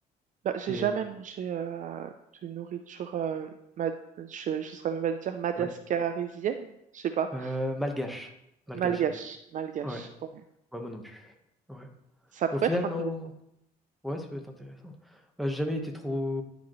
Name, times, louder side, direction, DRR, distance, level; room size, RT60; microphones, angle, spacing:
voice 1, 0.4-2.1 2.4-3.5 3.8-3.9 4.2-7.5 8.7-10.1 12.3-12.7, right 8 dB, 50° right, 8 dB, 0.5 m, -31 dB
voice 2, 7.3-8.3 8.7-9.0 9.8-10.1 10.7-11.4 11.7-11.9 12.5-13.3 14.0-16.4, left 1 dB, ahead, 3 dB, 1.2 m, -33 dB
10.5 x 5.0 x 3.1 m, 0.80 s
cardioid pair, 110°, 17 cm